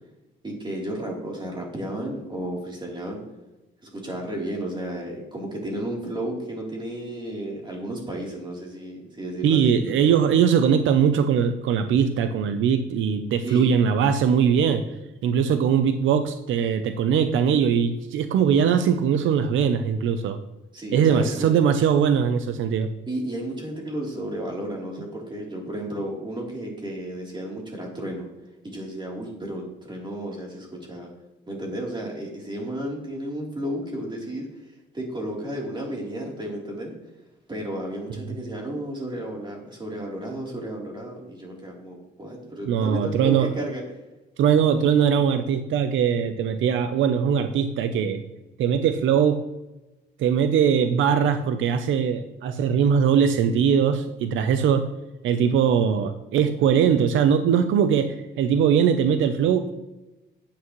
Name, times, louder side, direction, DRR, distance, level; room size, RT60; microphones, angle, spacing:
voice 1, 0.4-3.2 3.8-9.7 13.4-13.8 20.7-21.5 23.1-28.3 28.6-29.6 29.9-31.1 31.5-34.5 34.9-36.9 37.5-43.8, right 1 dB, 25° right, -2 dB, 3.5 m, -33 dB
voice 2, 9.4-14.8 15.2-20.4 20.9-22.9 42.7-43.5 44.4-48.2 48.6-49.4 50.2-54.9 55.2-59.7, right 7 dB, 80° right, 8 dB, 0.7 m, -21 dB
10.0 x 8.2 x 3.2 m, 1.0 s
cardioid pair, 90°, 20 cm